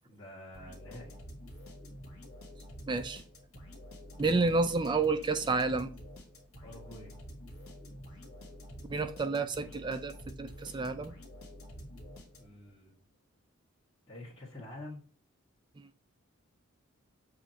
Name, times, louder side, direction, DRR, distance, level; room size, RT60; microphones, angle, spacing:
voice 1, 0.0-1.2 6.6-7.1 12.4-13.0 14.1-15.0, left 1 dB, 25° left, -7 dB, 1.8 m, -47 dB
sound 1, 0.5-12.7, equal, 80° left, 2.0 m, -48 dB
voice 2, 2.9-3.2 4.2-5.9 8.9-10.1 10.4-11.1 15.8-15.9, right 3 dB, 20° right, 9 dB, 0.3 m, -30 dB
7.4 x 2.5 x 2.9 m, 0.42 s
head